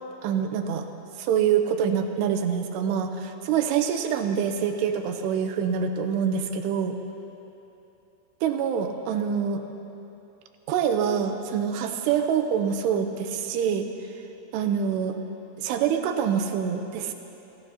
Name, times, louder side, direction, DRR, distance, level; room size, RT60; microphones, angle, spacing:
voice 1, 0.2-0.9 1.2-7.0 8.4-9.6 10.7-13.9 14.5-15.2 15.6-17.1, right 7 dB, 85° right, 6 dB, 2.9 m, -25 dB
28.5 x 15.5 x 2.9 m, 3.0 s
omnidirectional pair, 4.9 m